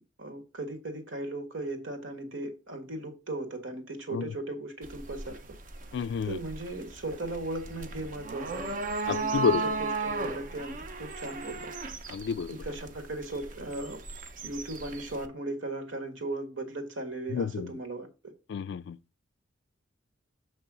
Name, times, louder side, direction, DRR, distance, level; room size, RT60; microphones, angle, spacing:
voice 1, 0.2-5.4 6.2-8.8 9.1-11.7 12.5-14.0 14.4-18.1, right 2 dB, 80° right, 1.6 m, -37 dB
sound 1, 4.8-15.3, right 3 dB, 45° right, 0.7 m, -36 dB
voice 2, 5.9-6.4 9.1-9.6 12.1-12.6 17.3-17.7 18.5-19.0, left 6 dB, 65° left, 0.3 m, -30 dB
6.9 x 3.2 x 6.0 m
head